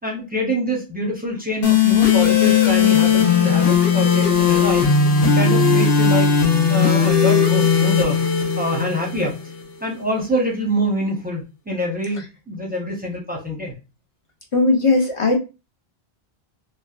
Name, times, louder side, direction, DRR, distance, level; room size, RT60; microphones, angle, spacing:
voice 1, 0.0-6.4 6.7-8.2 8.6-9.4 9.8-13.8, equal, 10° right, -1 dB, 0.5 m, -25 dB
sound 1, 1.6-9.6, left 6 dB, 75° left, 1.0 m, -17 dB
voice 2, 14.5-15.4, left 3 dB, 40° left, 1 dB, 0.5 m, -17 dB
3.3 x 2.0 x 2.3 m, 0.29 s
omnidirectional pair, 1.1 m